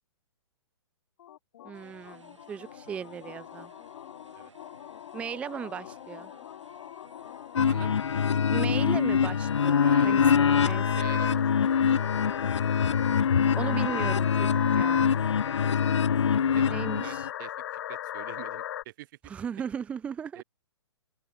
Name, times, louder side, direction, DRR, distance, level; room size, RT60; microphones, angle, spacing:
sound 1, 1.2-18.8, left 12 dB, 50° left, 3.9 m, -40 dB
voice 1, 1.6-3.7 5.1-6.3 8.5-10.9 13.6-15.1 16.7-17.3 19.3-20.4, right 7 dB, 10° right, 0.4 m, -37 dB
sound 2, 1.7-16.7, right 3 dB, 85° right, 4.2 m, -57 dB
sound 3, 7.6-17.3, left 7 dB, 75° left, 0.5 m, -24 dB
voice 2, 9.8-10.2 10.9-11.8 16.5-16.6 17.0-19.1 20.3-20.4, right 17 dB, 45° right, 6.5 m, -45 dB
open air
figure-of-eight pair, 120°, 15 cm